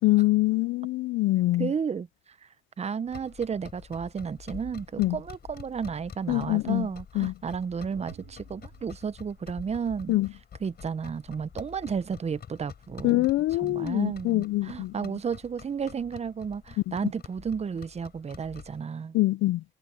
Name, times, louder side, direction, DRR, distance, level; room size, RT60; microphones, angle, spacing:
voice 1, 0.0-1.7 5.0-5.2 6.3-6.9 7.2-7.3 10.1-10.3 13.0-14.9 16.9-17.0 19.1-19.6, left 18 dB, 85° left, 0.4 m, -24 dB
voice 2, 1.6-2.1 2.8-10.2 10.6-13.3 13.6-19.2, right 6 dB, 35° right, 0.7 m, -32 dB
sound 1, 3.1-18.8, left 8 dB, 55° left, 4.0 m, -48 dB
sound 2, 7.9-10.0, right 13 dB, 80° right, 7.0 m, -53 dB
cardioid pair, 90°, 20 cm